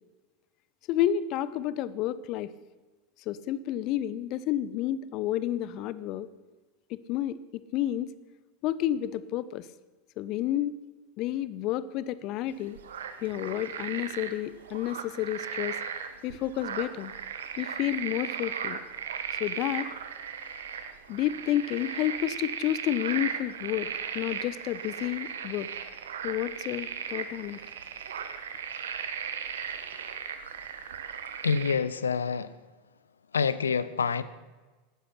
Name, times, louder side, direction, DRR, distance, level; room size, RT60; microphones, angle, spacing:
voice 1, 0.9-2.5 3.3-6.3 6.9-8.1 8.6-9.7 10.2-10.7 11.2-12.8 13.2-15.8 16.2-17.1 17.6-18.8 19.3-19.9 21.1-23.9 24.1-25.7 26.2-27.6, left 12 dB, 45° left, 17 dB, 0.8 m, -30 dB
sound 1, 12.5-31.7, right 7 dB, 65° right, 1.3 m, -37 dB
voice 2, 31.4-32.5 33.3-34.2, left 6 dB, 75° left, 16 dB, 0.7 m, -27 dB
16.5 x 13.0 x 5.9 m, 1.3 s
figure-of-eight pair, 85°, 0 cm